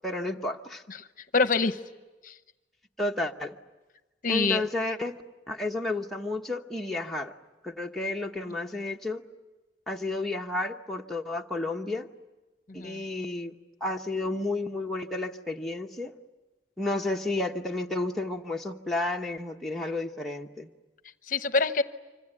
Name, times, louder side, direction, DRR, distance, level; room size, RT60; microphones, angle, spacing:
voice 1, 0.0-0.8 3.0-3.6 4.3-5.2 5.5-7.3 7.6-9.2 9.9-12.1 12.7-13.5 13.8-16.1 16.8-20.7, left 2 dB, ahead, 0 dB, 1.0 m, -31 dB
voice 2, 1.3-1.8 2.2-2.3 4.2-4.6 12.7-13.0 21.3-21.8, left 4 dB, 50° left, 11 dB, 0.8 m, -25 dB
26.0 x 25.0 x 9.0 m, 1.2 s
head